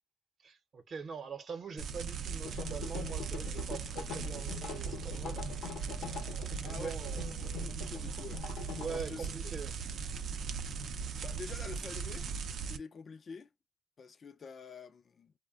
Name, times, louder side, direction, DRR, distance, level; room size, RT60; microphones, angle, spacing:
voice 1, 0.4-5.5 6.0-7.9 8.8-9.8, right 5 dB, 50° right, 0.8 m, -44 dB
sound 1, 1.8-12.8, right 6 dB, 65° right, 0.5 m, -39 dB
sound 2, 2.4-9.0, left 7 dB, 90° left, 0.7 m, -44 dB
voice 2, 6.6-7.3 7.6-9.3 10.5-12.3 12.6-13.5 14.0-15.3, left 5 dB, 45° left, 0.4 m, -48 dB
2.3 x 2.1 x 3.6 m
cardioid pair, 105°, 0 cm